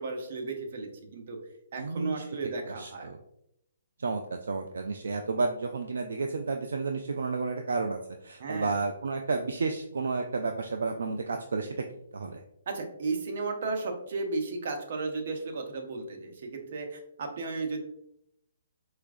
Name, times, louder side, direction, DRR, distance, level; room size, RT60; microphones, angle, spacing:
voice 1, 0.0-1.4 1.7-3.1 8.4-8.8 12.7-17.8, right 3 dB, 60° right, 3 dB, 0.8 m, -34 dB
voice 2, 1.8-2.2 2.8-3.2 4.0-11.8 12.1-12.4, right 4 dB, 80° right, 4 dB, 0.3 m, -31 dB
4.4 x 2.4 x 2.4 m, 0.76 s
hypercardioid pair, 145°, 0 cm